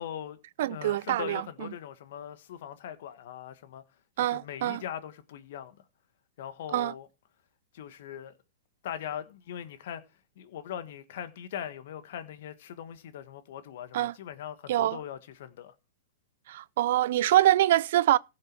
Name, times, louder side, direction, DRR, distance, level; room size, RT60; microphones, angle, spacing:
voice 1, 0.0-0.4 0.7-3.8 4.2-5.8 6.4-7.1 7.7-8.3 8.8-10.1 10.4-15.7, left 9 dB, 65° left, 1.5 m, -40 dB
voice 2, 0.6-1.4 4.2-4.8 6.7-6.9 13.9-14.1 14.7-15.0 16.5-18.2, right 13 dB, 65° right, 0.5 m, -24 dB
16.0 x 6.7 x 4.6 m
hypercardioid pair, 120°, 0 cm